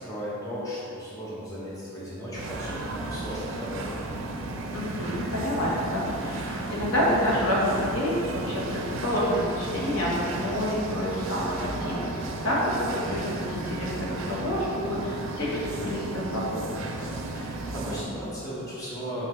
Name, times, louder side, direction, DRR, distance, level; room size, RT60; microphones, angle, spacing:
voice 1, 0.0-4.0 17.3-19.3, equal, 15° left, -8 dB, 1.2 m, -36 dB
sound 1, 2.4-18.0, right 2 dB, 60° right, 0.5 m, -34 dB
voice 2, 4.7-12.1 12.4-16.8, equal, 75° left, -6 dB, 1.4 m, -28 dB
5.7 x 5.7 x 3.2 m, 2.7 s
head